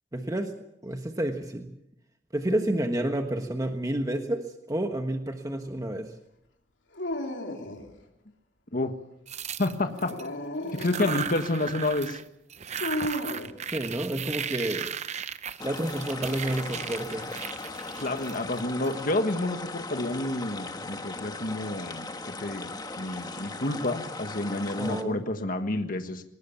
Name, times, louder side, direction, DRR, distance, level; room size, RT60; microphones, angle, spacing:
voice 1, 0.1-0.5 0.8-1.7 2.3-6.1 13.7-14.9 15.1-15.3 15.6-17.3 24.8-25.2, right 1 dB, 20° right, 5 dB, 1.3 m, -30 dB
Dog, 6.9-7.9 9.8-11.3 12.8-13.6, left 1 dB, 75° left, 3.2 m, -34 dB
sound 1, 9.3-10.3 10.7-12.2 12.5-18.9, right 7 dB, 40° right, 0.7 m, -36 dB
voice 2, 9.6-10.1 10.7-12.2 16.7-16.8 18.0-22.1 22.4-26.2, left 2 dB, 50° left, 7 dB, 1.6 m, -29 dB
sound 2, 15.6-25.0, left 3 dB, 20° left, 1.4 m, -38 dB
21.0 x 19.0 x 7.2 m, 0.83 s
head